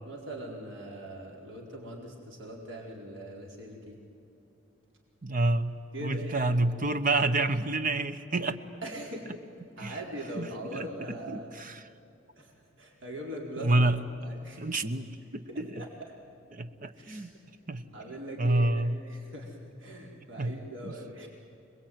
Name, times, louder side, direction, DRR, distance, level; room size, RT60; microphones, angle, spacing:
voice 1, 0.0-4.0 5.9-6.3 8.8-9.3 9.8-11.5 12.4-12.5 12.8-13.9 14.2-14.6 15.5-15.9 16.9-17.3 17.9-21.3, right 1 dB, 70° right, -1 dB, 4.6 m, -41 dB
voice 2, 5.2-8.6 9.8-10.0 10.4-10.9 11.3-11.8 13.6-14.0 14.6-15.8 16.5-17.3 17.7-17.8 18.4-19.0 20.4-20.5 20.8-20.9, right 2 dB, 40° right, 10 dB, 1.1 m, -28 dB
27.0 x 21.0 x 9.4 m, 2.8 s
head